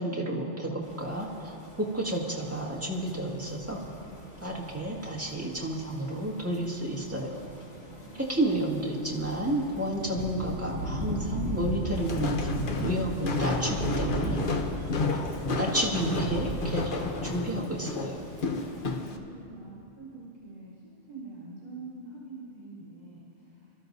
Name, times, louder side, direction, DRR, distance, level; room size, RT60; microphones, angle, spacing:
voice 1, 0.0-1.5 1.9-3.8 4.4-7.4 8.3-14.4 15.1-18.2, right 1 dB, 10° right, -5 dB, 1.8 m, -31 dB
sound 1, 0.8-19.0, equal, 80° left, 2.3 m, -38 dB
voice 2, 7.9-8.2 8.6-9.0 18.9-23.9, right 3 dB, 45° right, -9 dB, 3.5 m, -46 dB
Walk footsteps, 11.9-19.2, left 3 dB, 50° left, 0.9 m, -32 dB
26.0 x 13.5 x 2.7 m, 2.8 s
omnidirectional pair, 1.2 m